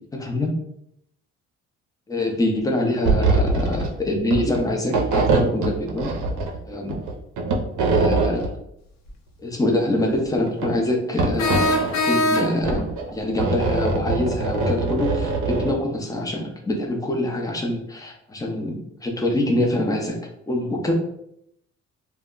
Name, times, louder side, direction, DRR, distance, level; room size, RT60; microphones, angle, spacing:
voice 1, 0.1-0.5 2.1-6.1 6.6-7.0 7.9-8.5 9.4-11.8 12.0-20.2 20.5-20.9, left 1 dB, 10° left, 1 dB, 0.6 m, -25 dB
sound 1, 3.0-3.9 4.2-4.6 4.9-6.6 6.9-8.5 10.2-10.7 11.2-12.0 12.6-15.7, right 3 dB, 75° right, 0.6 m, -23 dB
sound 2, 9.1-9.2 11.4-12.8, left 1 dB, 65° left, 0.6 m, -22 dB
2.1 x 2.1 x 3.7 m, 0.75 s
cardioid pair, 90°, 30 cm